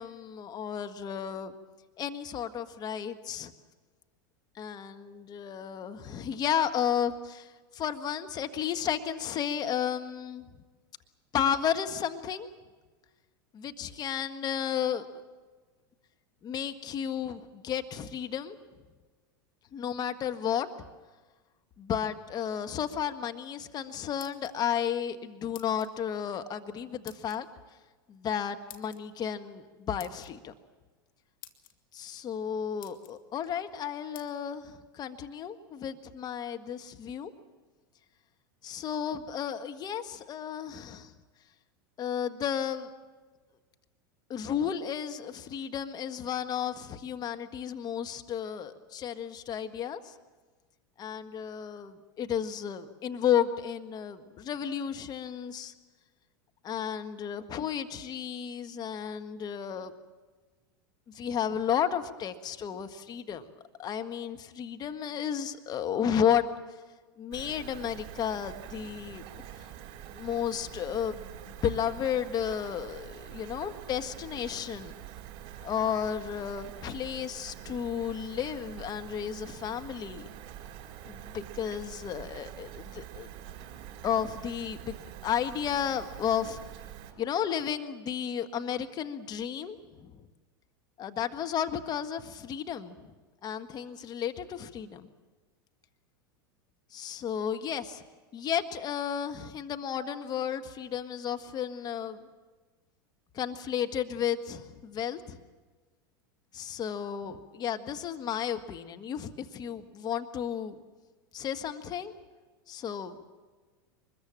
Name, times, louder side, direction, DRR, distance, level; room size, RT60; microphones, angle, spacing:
voice 1, 0.0-1.5 2.0-3.5 4.5-10.5 11.3-12.5 13.5-15.0 16.4-18.6 19.7-20.9 21.8-27.5 28.1-30.5 31.9-37.3 38.6-41.1 42.0-42.9 44.3-50.1 51.0-55.7 56.6-59.9 61.1-63.5 63.8-66.5 67.2-69.2 70.1-74.9 75.6-80.3 81.0-83.3 84.0-85.0 85.2-86.6 87.2-90.2 91.0-93.1 93.4-95.1 96.9-98.0 98.3-102.2 103.3-105.4 106.5-110.8 111.3-112.1 112.7-113.2, left 8 dB, 35° left, 8 dB, 1.5 m, -33 dB
sound 1, 24.2-24.8 25.5-25.9 27.1-27.4 28.7-29.0 30.0-30.3 31.0-31.1 31.4-31.7 32.4-32.5 32.8-33.2 34.1-34.3, left 13 dB, 70° left, 2.1 m, -50 dB
Rain, 67.3-87.1, right 11 dB, 50° right, 6.4 m, -45 dB
24.0 x 21.5 x 7.5 m, 1.3 s
hypercardioid pair, 100°, 12 cm